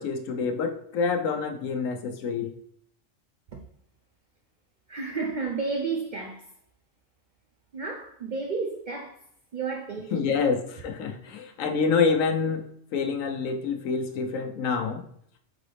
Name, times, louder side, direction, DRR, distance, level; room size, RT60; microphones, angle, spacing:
voice 1, 0.0-2.5 10.1-12.6 12.9-15.0, left 5 dB, 85° left, 1.1 m, -27 dB
voice 2, 4.9-6.5 7.7-9.2 9.5-10.4, right 4 dB, 60° right, 0.5 m, -32 dB
4.0 x 3.9 x 3.2 m
omnidirectional pair, 1.3 m